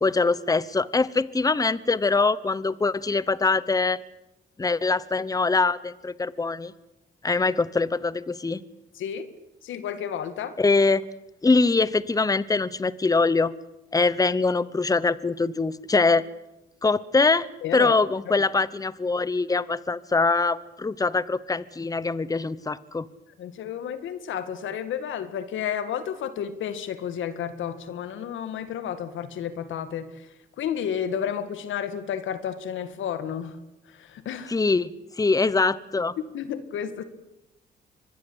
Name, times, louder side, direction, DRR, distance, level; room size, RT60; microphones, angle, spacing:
voice 1, 0.0-4.0 4.6-6.7 7.2-8.6 10.6-11.0 11.4-13.5 13.9-16.2 16.8-17.5 17.7-23.1 34.5-36.1, left 3 dB, 20° left, 19 dB, 1.0 m, -23 dB
voice 2, 9.0-9.3 9.6-10.6 17.6-18.0 18.3-18.4 23.4-30.3 30.6-33.6 33.9-34.6 36.2-37.0, left 8 dB, 75° left, 12 dB, 2.0 m, -31 dB
25.0 x 21.0 x 8.1 m, 0.91 s
cardioid pair, 90°, 20 cm